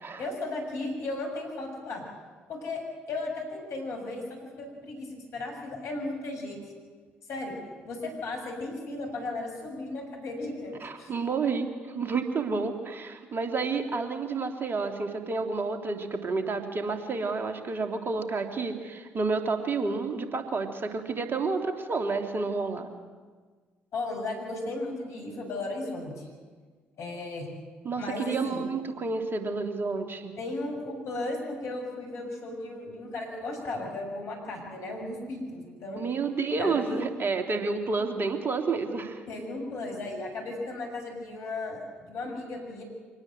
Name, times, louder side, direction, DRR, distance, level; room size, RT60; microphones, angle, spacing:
voice 1, 0.2-2.0 2.5-2.8 3.1-4.2 4.6-6.6 7.3-7.5 7.9-11.1 23.9-26.3 27.0-27.5 28.0-28.6 30.4-36.0 36.6-37.0 39.3-42.8, left 2 dB, 55° left, 1 dB, 7.3 m, -35 dB
voice 2, 10.8-22.9 27.8-30.4 36.0-39.2, right 4 dB, 40° right, 6 dB, 3.0 m, -30 dB
25.0 x 19.0 x 8.0 m, 1.5 s
figure-of-eight pair, 45°, 6 cm